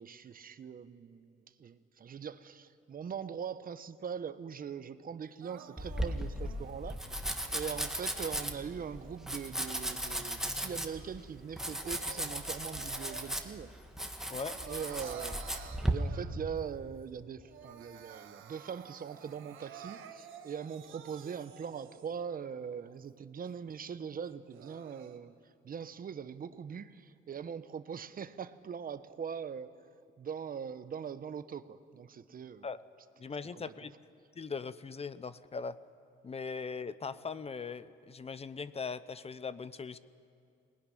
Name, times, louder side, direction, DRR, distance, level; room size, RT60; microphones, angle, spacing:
voice 1, 0.0-13.7 14.7-25.3 25.6-29.7 30.2-32.7 33.5-33.6, right 7 dB, 45° right, 13 dB, 0.9 m, -42 dB
Crying sobbing, 5.4-7.8 8.5-10.2 10.7-13.6 13.9-16.6 17.0-17.1 17.4-22.2 22.8-22.9 23.4-23.5 24.3-25.2, right 8 dB, 80° right, 1.6 m, -52 dB
Domestic sounds home sounds, 5.8-15.9, right 1 dB, ahead, 1.8 m, -37 dB
voice 2, 33.2-33.9 34.3-35.8 36.2-40.0, left 5 dB, 30° left, 15 dB, 0.8 m, -40 dB
22.0 x 19.5 x 10.0 m, 2.4 s
cardioid pair, 90°, 20 cm